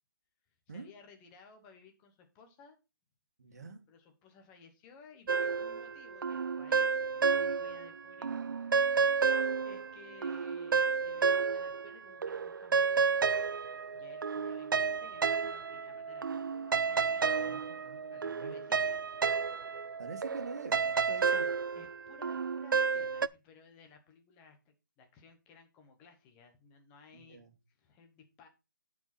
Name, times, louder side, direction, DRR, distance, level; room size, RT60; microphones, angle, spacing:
voice 1, 0.7-2.8 3.5-3.6 3.9-9.2 9.6-13.3 13.9-19.0 21.7-27.4 27.7-28.5, left 5 dB, 10° left, 1.0 m, -58 dB
voice 2, 3.4-3.8 17.4-18.6 20.0-21.5 27.1-27.5, right 4 dB, 55° right, 1.8 m, -46 dB
sound 1, 5.3-7.9 8.2-11.9 12.2-23.3, right 5 dB, 80° right, 0.4 m, -31 dB
11.0 x 5.0 x 4.1 m
hypercardioid pair, 170°, 11 cm